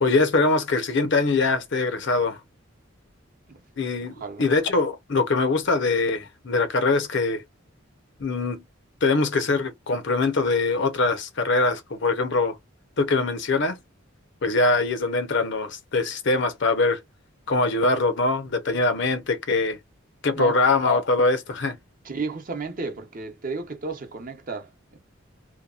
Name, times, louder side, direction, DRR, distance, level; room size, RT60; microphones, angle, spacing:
voice 1, 0.0-2.4 3.8-4.1 4.4-7.4 8.2-8.6 9.0-12.6 13.0-13.8 14.4-17.0 17.5-19.8 20.2-21.8, left 3 dB, 60° left, 0.7 m, -23 dB
voice 2, 4.0-4.5 20.4-20.6 22.0-25.0, right 4 dB, 40° right, 0.7 m, -33 dB
2.8 x 2.2 x 2.4 m
head